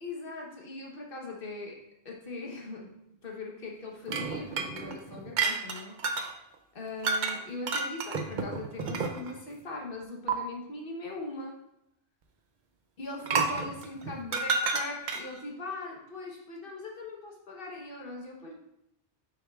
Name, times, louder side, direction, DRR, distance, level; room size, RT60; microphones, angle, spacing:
voice 1, 0.0-1.8 2.0-2.9 3.2-5.9 6.7-11.5 13.0-18.6, left 2 dB, 55° left, -1 dB, 1.3 m, -40 dB
sound 1, 4.1-6.3 7.0-7.4 7.7-9.4 10.3-10.4 13.2-15.4, right 4 dB, 55° right, 0.6 m, -30 dB
6.5 x 6.2 x 2.4 m, 0.82 s
omnidirectional pair, 1.1 m